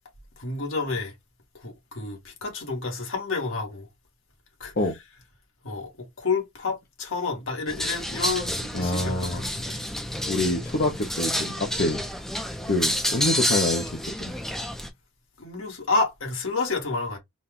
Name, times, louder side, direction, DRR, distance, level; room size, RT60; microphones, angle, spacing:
voice 1, 0.4-1.1 1.6-3.9 4.6-4.7 5.6-9.8 15.4-17.2, left 3 dB, 70° left, 1.6 m, -29 dB
sound 1, 7.7-14.9, equal, ahead, 0.6 m, -29 dB
voice 2, 8.7-9.5 10.3-12.0 12.7-14.3, left 2 dB, 45° left, 0.7 m, -26 dB
4.1 x 2.3 x 3.6 m
head